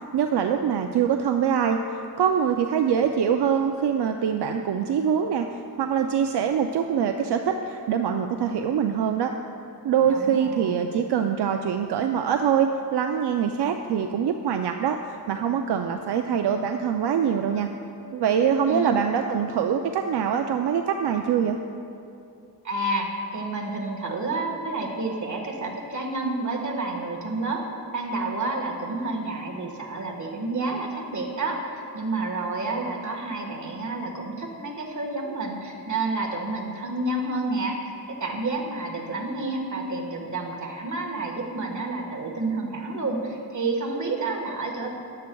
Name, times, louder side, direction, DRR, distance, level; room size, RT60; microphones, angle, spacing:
voice 1, 0.1-1.8 2.2-5.5 5.8-9.3 9.8-17.7 18.1-21.6, right 8 dB, 80° right, 5 dB, 0.5 m, -24 dB
voice 2, 10.1-10.9 18.7-18.9 22.6-27.7 27.9-44.9, right 2 dB, 45° right, 0 dB, 1.5 m, -29 dB
13.5 x 10.5 x 2.3 m, 2.6 s
cardioid pair, 70°, 40 cm